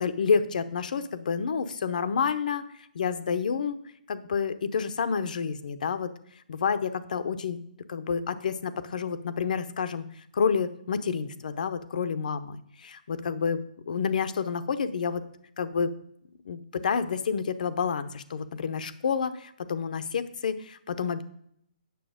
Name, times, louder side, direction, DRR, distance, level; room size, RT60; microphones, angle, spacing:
voice 1, 0.0-2.6 2.9-3.8 4.1-6.1 6.5-7.6 7.9-10.0 10.3-15.2 15.6-15.9 16.5-21.2, left 6 dB, 60° left, 11 dB, 0.8 m, -29 dB
9.4 x 7.0 x 5.0 m, 0.70 s
hypercardioid pair, 155°, 5 cm